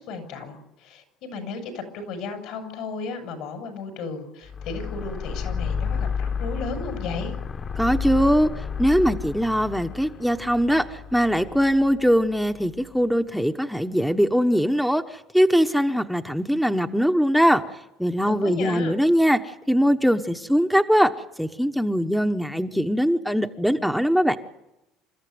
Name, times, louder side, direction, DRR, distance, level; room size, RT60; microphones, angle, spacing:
voice 1, 0.0-7.3 18.2-18.9, left 3 dB, 70° left, 6 dB, 6.7 m, -34 dB
sound 1, 4.5-12.8, left 6 dB, 35° left, 1.6 m, -31 dB
voice 2, 7.8-8.5 8.8-17.6 18.0-24.4, equal, ahead, 6 dB, 1.1 m, -21 dB
28.5 x 14.0 x 9.5 m, 0.93 s
supercardioid pair, 105°, 0 cm